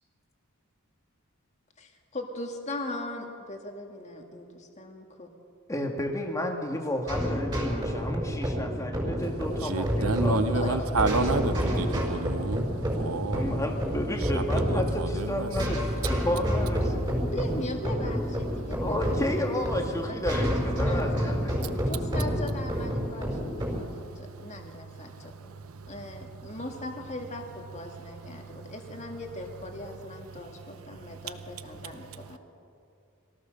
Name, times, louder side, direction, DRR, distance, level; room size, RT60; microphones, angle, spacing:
voice 1, 1.8-5.3 10.5-10.7 17.1-21.4 21.9-23.4 23.9-25.3 25.9-32.4, left 1 dB, 30° left, 2.1 m, -39 dB
voice 2, 5.7-10.4 10.7-11.0 13.3-17.0 18.8-21.8, left 1 dB, 15° left, 2.0 m, -32 dB
sound 1, 7.1-23.8, equal, 20° right, 4.8 m, -29 dB
voice 3, 9.6-13.6 14.2-15.5 16.9-17.1 18.6-18.7 21.5-21.9 23.6-26.1 26.4-26.5 28.2-28.7 30.3-30.5 30.9-31.3 31.8-32.4, right 3 dB, 70° right, 1.0 m, -33 dB
22.5 x 17.0 x 6.6 m
head